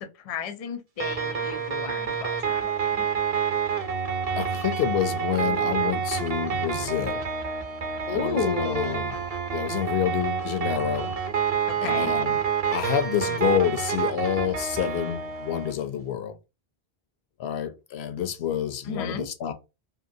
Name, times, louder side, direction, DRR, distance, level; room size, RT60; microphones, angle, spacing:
voice 1, 0.0-3.1 8.1-9.0 11.8-12.1 18.9-19.3, left 5 dB, 50° left, 0.5 m, -32 dB
sound 1, 1.0-15.7, right 7 dB, 45° right, 0.6 m, -28 dB
voice 2, 4.4-7.3 8.1-9.2 9.5-11.1 11.8-12.4 12.7-16.4 17.4-19.5, left 9 dB, 80° left, 0.8 m, -28 dB
2.9 x 2.7 x 2.6 m
omnidirectional pair, 1.1 m